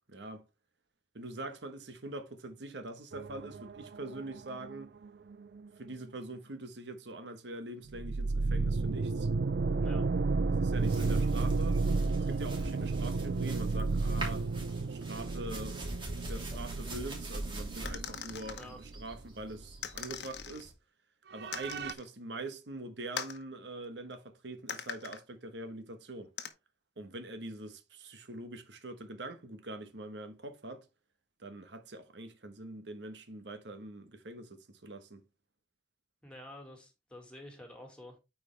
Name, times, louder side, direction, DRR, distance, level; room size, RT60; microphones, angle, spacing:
voice 1, 0.1-0.4 1.1-4.9 5.8-9.3 10.6-11.8 12.3-14.5 14.9-15.8 16.2-20.7 21.3-26.3 27.0-30.8 31.4-35.2, right 2 dB, 85° right, 1.2 m, -43 dB
sound 1, 3.1-5.9 7.9-19.3 19.6-19.7 21.4-21.9, right 3 dB, 65° right, 0.4 m, -33 dB
voice 2, 9.8-10.1 18.5-18.8 36.2-38.2, left 1 dB, 5° left, 2.0 m, -49 dB
sound 2, 10.7-20.7, right 1 dB, 30° right, 2.9 m, -44 dB
sound 3, 17.9-18.7 19.8-20.7 21.5-22.1 23.2-23.4 24.7-25.2 26.4-26.5, left 7 dB, 80° left, 1.0 m, -41 dB
8.8 x 4.8 x 3.3 m
head